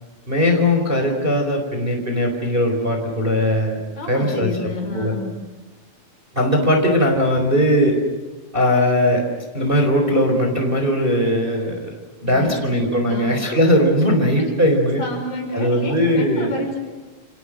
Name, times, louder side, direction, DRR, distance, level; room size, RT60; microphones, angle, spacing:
voice 1, 0.3-3.8 4.1-5.1 6.3-8.0 8.5-9.2 9.5-11.9 12.2-15.0 15.5-16.5, equal, 15° right, 3 dB, 3.9 m, -19 dB
voice 2, 3.9-5.4 12.3-12.7 13.1-13.6 14.4-14.5 15.0-16.8, left 1 dB, 60° left, 3 dB, 7.0 m, -29 dB
29.5 x 28.0 x 6.5 m, 1.3 s
omnidirectional pair, 4.6 m